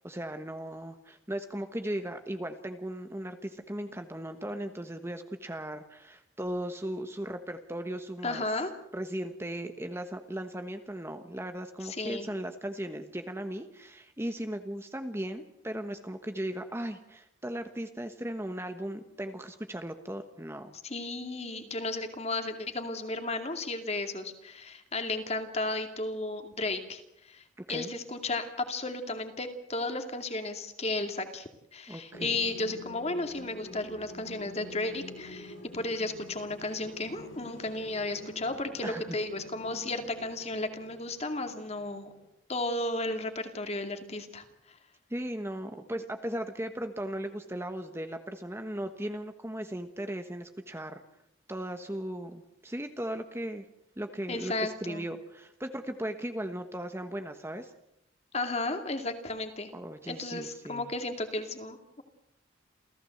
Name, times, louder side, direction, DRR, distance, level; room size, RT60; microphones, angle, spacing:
voice 1, 0.0-8.4 8.9-20.7 27.6-27.9 31.9-32.4 38.8-39.2 45.1-51.0 51.5-53.6 54.0-57.7 59.7-60.9, right 1 dB, 15° right, 7 dB, 1.2 m, -37 dB
voice 2, 8.2-8.7 11.8-12.3 20.8-27.4 27.7-42.1 42.5-44.8 54.3-55.1 58.3-59.7 60.1-62.0, left 2 dB, 30° left, 6 dB, 2.4 m, -34 dB
sound 1, 32.1-42.3, left 1 dB, 70° left, 6.0 m, -47 dB
28.5 x 15.5 x 7.8 m, 0.81 s
head